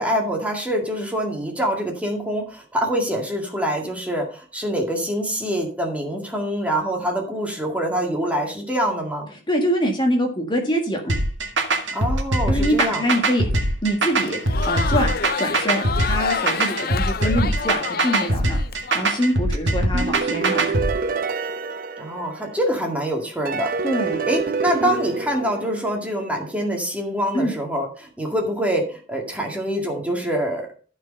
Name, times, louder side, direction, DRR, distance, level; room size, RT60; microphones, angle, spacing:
voice 1, 0.0-9.3 11.9-13.0 22.0-23.7 24.2-30.7, equal, 5° right, 1 dB, 2.1 m, -25 dB
voice 2, 9.5-11.1 12.5-18.6 18.9-20.8 23.8-24.2 27.3-27.5, equal, 25° left, 2 dB, 1.7 m, -24 dB
sound 1, 11.1-20.9, right 2 dB, 80° right, 1.9 m, -22 dB
Crowd, 14.2-19.0, left 5 dB, 50° left, 0.5 m, -28 dB
sound 2, 19.9-22.8 23.4-26.3, right 5 dB, 50° right, 0.8 m, -27 dB
13.5 x 4.8 x 5.4 m, 0.41 s
head